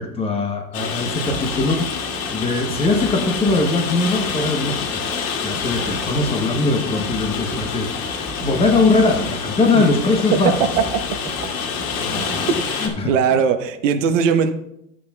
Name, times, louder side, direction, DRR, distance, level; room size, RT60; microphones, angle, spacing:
voice 1, 0.0-10.6 12.0-12.5 12.8-13.1, left 3 dB, 15° left, 3 dB, 0.8 m, -21 dB
Rain, 0.7-12.9, left 6 dB, 90° left, 2.3 m, -27 dB
sound 1, 1.3-12.7, right 1 dB, 5° right, 0.4 m, -38 dB
voice 2, 12.6-14.5, right 6 dB, 60° right, 8 dB, 1.0 m, -20 dB
12.5 x 8.6 x 2.3 m, 0.78 s
supercardioid pair, 155°, 41 cm